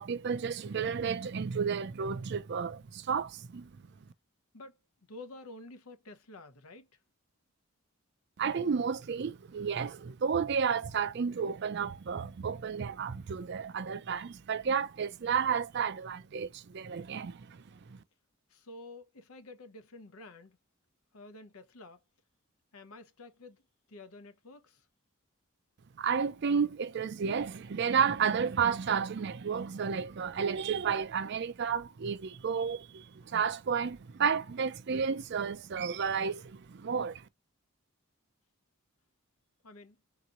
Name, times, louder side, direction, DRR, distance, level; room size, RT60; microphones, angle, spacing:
voice 1, 0.0-3.7 8.4-18.0 26.0-37.2, right 6 dB, 50° right, 0.4 m, -32 dB
voice 2, 5.1-6.9 18.5-20.6 21.1-22.0 22.7-23.6 23.9-24.8 39.6-40.0, left 2 dB, 80° left, 0.8 m, -50 dB
3.9 x 2.9 x 2.4 m
head